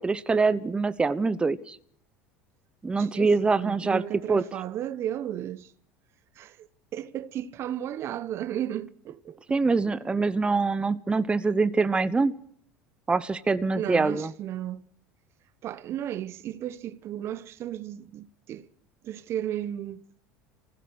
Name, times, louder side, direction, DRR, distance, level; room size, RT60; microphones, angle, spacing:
voice 1, 0.0-1.8 2.8-4.0 4.3-4.4 9.5-12.4 13.1-14.3, right 4 dB, 15° right, 1.0 m, -24 dB
voice 2, 3.0-5.7 6.4-9.4 13.7-14.8 15.6-18.7 19.0-20.0, right 11 dB, 50° right, 1.1 m, -34 dB
23.5 x 16.0 x 9.6 m
hypercardioid pair, 80°, 6 cm